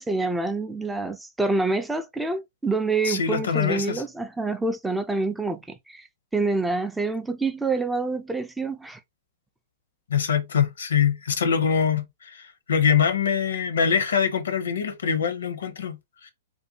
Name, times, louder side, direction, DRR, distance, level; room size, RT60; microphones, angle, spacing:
voice 1, 0.0-6.1 6.3-9.0, right 3 dB, 5° right, 0.3 m, -27 dB
voice 2, 3.0-4.0 10.1-16.3, left 7 dB, 75° left, 0.6 m, -24 dB
2.5 x 2.1 x 2.7 m
hypercardioid pair, 120°, 0 cm